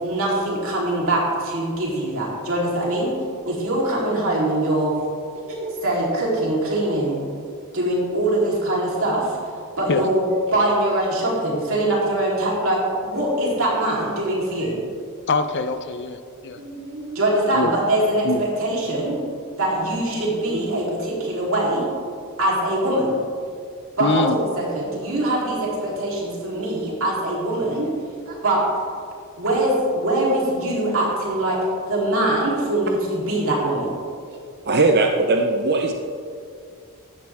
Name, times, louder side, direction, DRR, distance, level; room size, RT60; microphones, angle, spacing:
voice 1, 0.0-3.2 3.4-4.9 5.5-7.2 7.7-9.4 9.8-10.2 10.5-14.7 16.6-19.2 19.6-21.9 22.4-23.2 24.0-27.9 28.3-28.7 29.4-31.6 31.9-33.9, right 1 dB, 65° right, -4 dB, 3.8 m, -23 dB
voice 2, 15.3-16.6 17.5-17.7 18.2-18.4 24.0-24.4, left 3 dB, 55° left, 10 dB, 0.7 m, -23 dB
voice 3, 34.7-35.9, right 3 dB, 50° right, 3 dB, 0.8 m, -19 dB
15.5 x 11.5 x 3.6 m, 2.2 s
head